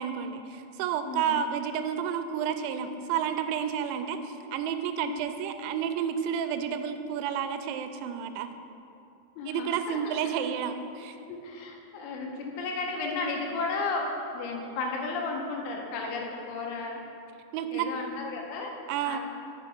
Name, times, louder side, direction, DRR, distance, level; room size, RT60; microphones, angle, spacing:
voice 1, 0.0-8.5 9.5-11.2 12.3-12.4 17.5-17.9 18.9-19.2, right 8 dB, 85° right, 9 dB, 2.9 m, -31 dB
voice 2, 1.0-1.4 5.0-5.2 9.4-10.2 11.3-14.0 14.3-17.0 17.7-18.7 19.0-19.3, left 3 dB, 90° left, 0 dB, 3.2 m, -34 dB
6.9 x 6.9 x 5.8 m, 2.8 s
omnidirectional pair, 5.4 m